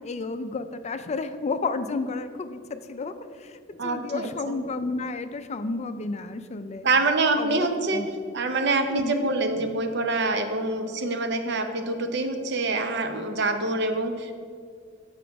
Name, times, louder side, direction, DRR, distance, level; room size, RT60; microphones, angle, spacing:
voice 1, 0.0-6.9 7.4-8.1 8.9-9.3, left 3 dB, 35° left, 10 dB, 0.4 m, -32 dB
voice 2, 3.8-4.5 6.8-8.0 8.3-14.3, right 3 dB, 60° right, 6 dB, 0.7 m, -26 dB
7.3 x 5.9 x 4.7 m, 2.2 s
head